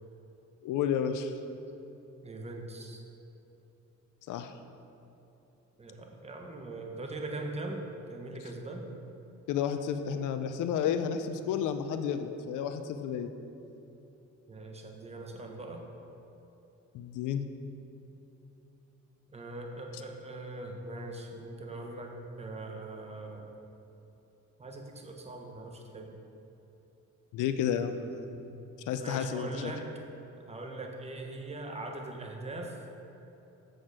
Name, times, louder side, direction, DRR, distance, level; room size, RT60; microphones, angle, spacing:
voice 1, 0.6-1.3 4.3-4.5 9.5-13.3 16.9-17.5 27.3-28.0 28.9-29.7, left 8 dB, 85° left, 9 dB, 0.6 m, -31 dB
voice 2, 2.2-3.0 5.8-8.9 14.5-15.9 19.3-23.5 24.6-26.2 27.9-28.6 29.0-29.8 30.5-32.8, right 2 dB, 20° right, 2 dB, 1.1 m, -41 dB
7.8 x 6.3 x 5.0 m, 3.0 s
cardioid pair, 90°, 30 cm